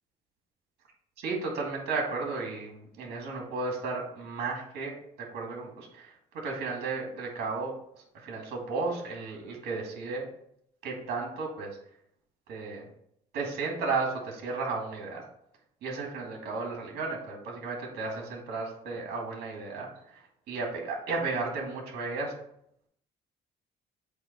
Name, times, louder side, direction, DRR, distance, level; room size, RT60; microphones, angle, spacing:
voice 1, 1.2-4.9 5.3-7.7 8.2-10.3 10.8-11.7 12.5-12.9 13.3-15.2 15.8-20.2 20.5-22.3, right 3 dB, 75° right, 0 dB, 2.2 m, -34 dB
7.9 x 3.0 x 4.5 m, 0.72 s
cardioid pair, 110°, 17 cm